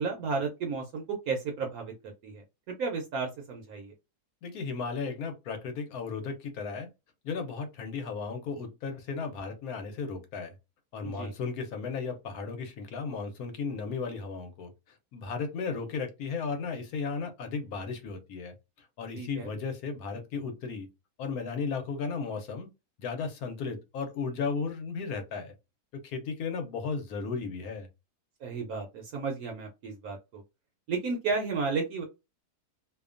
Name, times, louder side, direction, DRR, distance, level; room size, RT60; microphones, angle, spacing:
voice 1, 0.0-3.9 11.0-11.3 19.1-19.5 28.4-30.4 30.9-32.0, right 4 dB, 70° right, 1.0 m, -33 dB
voice 2, 4.4-6.9 7.2-10.5 10.9-14.7 15.1-20.9 21.2-22.7 23.0-25.5 26.0-27.9, left 5 dB, 70° left, 1.1 m, -35 dB
2.7 x 2.2 x 2.4 m
omnidirectional pair, 1.7 m